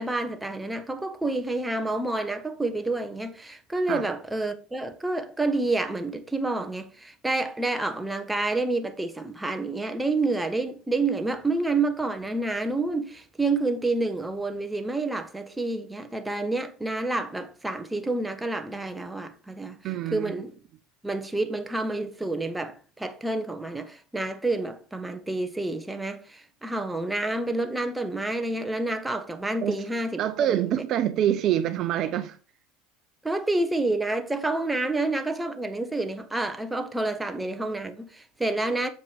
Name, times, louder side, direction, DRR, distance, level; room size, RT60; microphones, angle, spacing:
voice 1, 0.0-20.5 21.0-30.6 33.2-38.9, right 2 dB, 10° right, 1.2 m, -29 dB
voice 2, 19.8-20.4 29.6-29.8 30.2-32.4, right 11 dB, 50° right, 0.6 m, -26 dB
7.3 x 5.1 x 5.0 m
hypercardioid pair, 90°, 0 cm